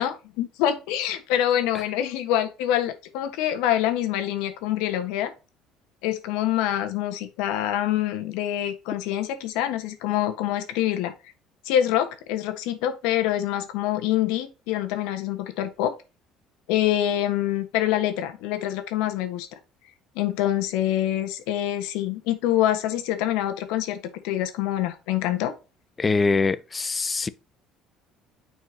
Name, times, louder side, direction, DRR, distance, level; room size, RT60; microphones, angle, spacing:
voice 1, 0.0-5.3 6.0-11.1 11.6-15.9 16.7-19.5 20.1-24.0 24.2-25.5, left 12 dB, 85° left, 1.4 m, -25 dB
voice 2, 26.0-27.3, left 4 dB, 20° left, 0.6 m, -23 dB
9.6 x 4.5 x 2.8 m
cardioid pair, 120°, 0 cm